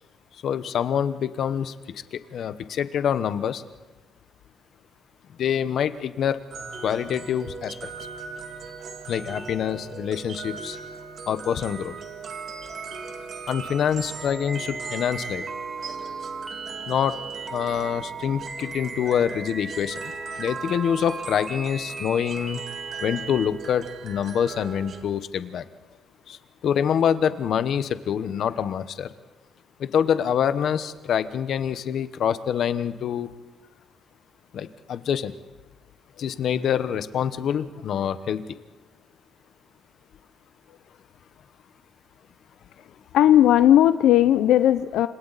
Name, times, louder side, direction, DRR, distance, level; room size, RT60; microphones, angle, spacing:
voice 1, 0.4-3.6 5.4-6.4 6.8-7.7 9.1-10.8 11.3-11.9 13.5-15.4 16.9-17.1 17.5-20.0 20.4-22.6 23.0-25.6 26.3-26.4 26.6-29.1 29.8-33.3 34.5-35.3 36.2-38.4, left 8 dB, 55° left, 12 dB, 1.0 m, -26 dB
sound 1, 6.5-25.0, right 5 dB, 50° right, 2.0 m, -39 dB
sound 2, 14.5-23.5, right 3 dB, 20° right, 1.0 m, -37 dB
voice 2, 43.1-45.1, left 12 dB, 90° left, 12 dB, 0.6 m, -16 dB
29.5 x 26.5 x 4.1 m, 1.2 s
cardioid pair, 155°, 0 cm